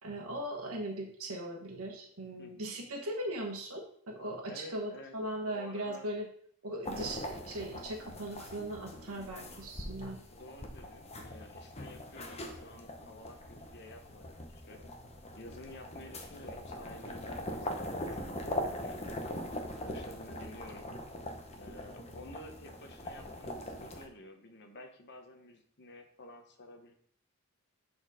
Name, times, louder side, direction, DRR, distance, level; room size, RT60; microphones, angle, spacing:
voice 1, 0.0-6.3 6.6-10.2, right 1 dB, 75° right, 1 dB, 1.3 m, -39 dB
voice 2, 2.4-2.7 4.4-5.1 5.4-6.1 10.3-13.4 13.7-14.8 15.4-19.0 19.6-20.9 21.6-26.9, left 1 dB, 50° left, 5 dB, 1.0 m, -51 dB
sound 1, 6.8-24.1, left 1 dB, 30° left, 0.9 m, -42 dB
7.0 x 4.3 x 4.9 m, 0.62 s
head